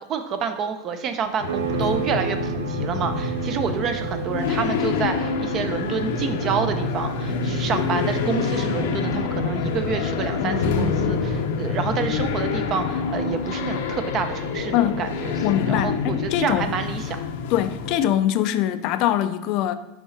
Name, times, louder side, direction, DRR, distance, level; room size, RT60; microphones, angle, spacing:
voice 1, 0.1-15.4 15.7-17.2, right 6 dB, 35° right, 0.7 m, -28 dB
sound 1, 1.4-18.0, left 5 dB, 75° left, 0.7 m, -26 dB
sound 2, 1.5-11.8, right 11 dB, 85° right, 0.4 m, -34 dB
voice 2, 14.7-15.0 15.4-16.7 17.5-19.7, left 12 dB, 50° left, 0.4 m, -23 dB
6.0 x 5.0 x 4.1 m
supercardioid pair, 140°, 0 cm